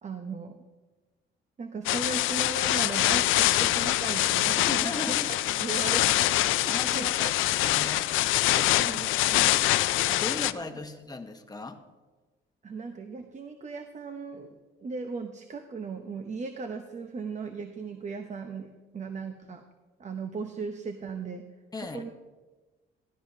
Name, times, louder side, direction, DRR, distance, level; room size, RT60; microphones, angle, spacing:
voice 1, 0.0-0.6 1.6-7.3 7.8-7.9 8.5-9.6 12.6-19.6 20.0-21.4 21.9-22.1, right 4 dB, 35° right, 6 dB, 0.9 m, -37 dB
sound 1, 1.9-10.5, left 15 dB, 85° left, 0.4 m, -25 dB
voice 2, 4.7-5.4 6.7-8.1 8.6-9.3 10.1-11.8 21.7-22.0, left 2 dB, 20° left, 6 dB, 1.1 m, -38 dB
15.0 x 12.5 x 2.7 m, 1.2 s
cardioid pair, 90°, 20 cm